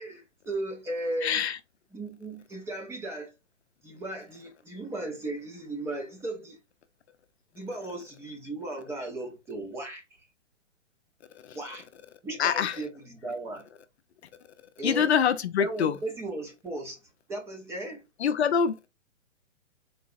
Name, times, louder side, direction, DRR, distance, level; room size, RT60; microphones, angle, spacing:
voice 1, 0.0-1.4 1.9-3.3 3.8-6.6 7.5-10.2 11.5-11.9 12.2-13.7 14.8-15.1 15.6-17.0 17.3-18.0, right 2 dB, 5° right, 0.6 m, -36 dB
voice 2, 1.2-1.6 11.4-11.6 12.4-12.8 14.8-16.0 18.2-18.9, left 7 dB, 60° left, 0.6 m, -25 dB
4.0 x 3.7 x 2.5 m
hypercardioid pair, 135°, 37 cm